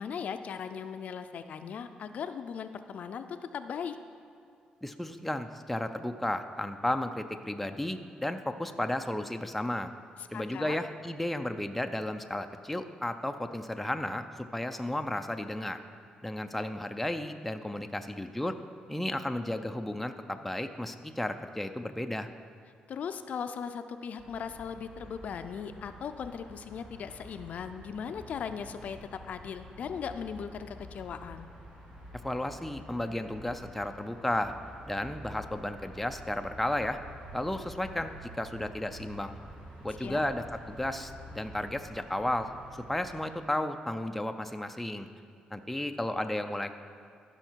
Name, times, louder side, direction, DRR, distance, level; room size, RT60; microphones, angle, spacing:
voice 1, 0.0-4.0 10.3-10.8 22.9-31.5 40.0-40.2, left 7 dB, 60° left, 9 dB, 0.4 m, -38 dB
voice 2, 4.8-9.9 10.3-15.8 16.2-18.6 18.9-22.3 32.2-34.5 34.9-37.0 37.3-39.4 39.8-42.5 42.9-45.1 45.5-46.7, left 1 dB, 5° left, 6 dB, 0.4 m, -33 dB
sound 1, 24.2-43.2, equal, 65° right, 2.3 m, -49 dB
14.5 x 5.7 x 4.5 m, 2.4 s
cardioid pair, 105°, 3 cm